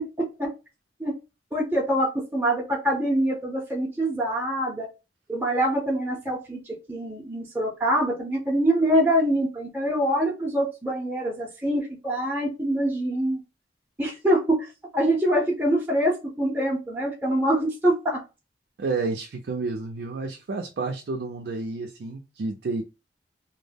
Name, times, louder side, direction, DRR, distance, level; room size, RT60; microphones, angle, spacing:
voice 1, 0.2-0.5 1.0-1.1 1.5-4.9 5.3-13.4 14.0-18.2, right 1 dB, 10° right, 0.6 m, -25 dB
voice 2, 18.8-22.8, right 3 dB, 65° right, 0.4 m, -30 dB
2.2 x 2.0 x 3.3 m
head